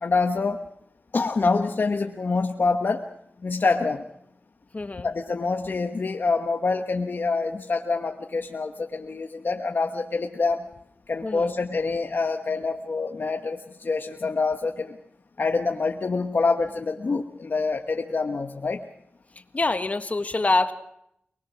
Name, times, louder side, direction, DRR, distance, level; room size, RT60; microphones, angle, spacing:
voice 1, 0.0-0.6 1.1-3.0 3.4-4.1 5.0-10.6 11.1-15.0 15.4-18.8, left 4 dB, 55° left, 4 dB, 1.2 m, -26 dB
voice 2, 4.7-5.1 11.2-11.6 19.5-20.7, left 2 dB, 40° left, 9 dB, 1.5 m, -25 dB
23.5 x 20.0 x 6.2 m, 0.75 s
wide cardioid pair, 70°, 4 cm